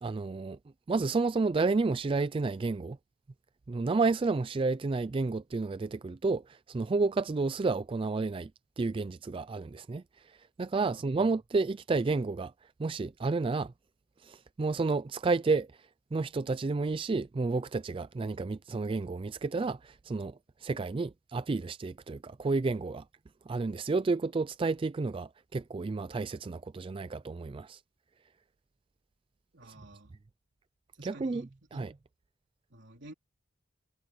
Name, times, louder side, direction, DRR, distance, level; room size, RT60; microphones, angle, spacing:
voice 1, 0.0-0.6 0.9-3.0 3.7-8.5 8.8-12.5 12.8-13.7 14.2-15.7 16.1-23.0 23.5-27.8 31.0-31.9, right 3 dB, 25° right, 0.3 m, -31 dB
voice 2, 29.5-30.1 30.9-31.9 32.7-33.1, right 2 dB, 60° right, 3.9 m, -52 dB
head